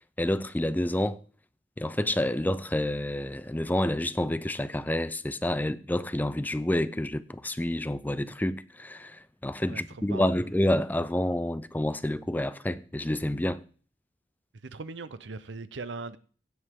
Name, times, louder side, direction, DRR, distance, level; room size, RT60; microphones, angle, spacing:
voice 1, 0.2-1.2 1.8-13.6, left 1 dB, 10° left, 0.5 m, -28 dB
voice 2, 9.7-10.3 14.6-16.2, right 3 dB, 75° right, 0.7 m, -39 dB
16.5 x 8.0 x 3.7 m
head